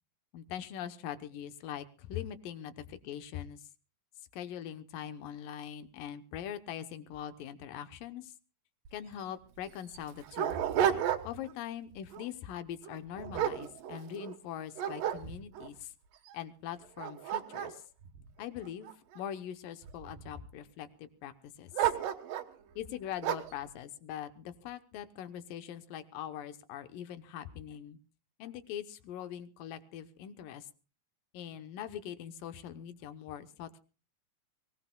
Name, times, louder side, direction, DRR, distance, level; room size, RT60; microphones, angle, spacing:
voice 1, 0.3-3.6 4.3-8.3 8.9-10.6 11.2-15.9 16.3-17.8 18.4-21.3 21.6-21.7 22.8-28.0 28.4-30.7 31.3-33.8, left 10 dB, 90° left, 11 dB, 2.7 m, -42 dB
Dog, 8.9-9.0 9.2-9.3 9.9-11.5 11.9-12.3 12.8-14.3 14.8-15.7 16.3-16.4 16.8-19.2 19.8-20.5 21.7-22.6 23.2-23.6, right 10 dB, 80° right, 2.9 m, -33 dB
23.5 x 18.5 x 2.3 m, 0.35 s
omnidirectional pair, 3.8 m